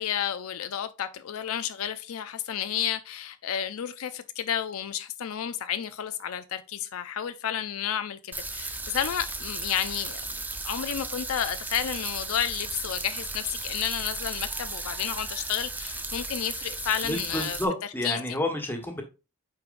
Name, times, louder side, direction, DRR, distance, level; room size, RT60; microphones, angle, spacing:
voice 1, 0.0-17.6 18.0-18.4, left 9 dB, 75° left, 0.4 m, -31 dB
sound 1, 8.3-17.6, right 2 dB, 10° right, 0.6 m, -35 dB
voice 2, 17.0-19.0, left 1 dB, 10° left, 1.2 m, -30 dB
8.4 x 4.6 x 2.5 m
head